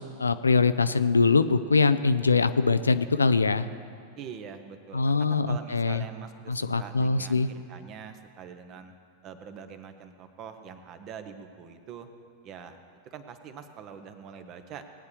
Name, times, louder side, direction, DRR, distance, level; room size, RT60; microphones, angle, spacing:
voice 1, 0.2-3.7 4.9-6.0 6.5-7.5, left 4 dB, 75° left, 12 dB, 0.4 m, -23 dB
voice 2, 4.2-8.9 9.2-12.1 12.4-12.8 13.1-14.8, right 7 dB, 35° right, 8 dB, 1.0 m, -44 dB
19.5 x 9.4 x 3.3 m, 2.3 s
figure-of-eight pair, 90°, 0 cm